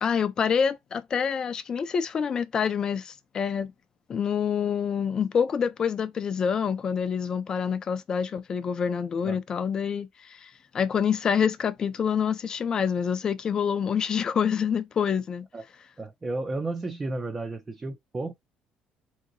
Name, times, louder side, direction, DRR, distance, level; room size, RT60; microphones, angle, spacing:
voice 1, 0.0-3.7 4.1-15.5, left 7 dB, 35° left, 0.5 m, -27 dB
voice 2, 16.0-18.3, right 2 dB, 20° right, 0.5 m, -32 dB
3.6 x 2.8 x 2.6 m
cardioid pair, 140°, 2 cm